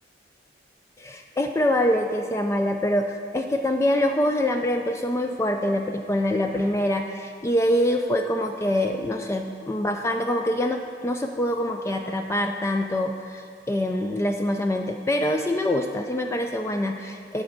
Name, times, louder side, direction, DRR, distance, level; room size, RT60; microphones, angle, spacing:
voice 1, 1.0-17.4, left 1 dB, 15° left, 4 dB, 0.3 m, -25 dB
8.0 x 5.2 x 7.2 m, 2.1 s
head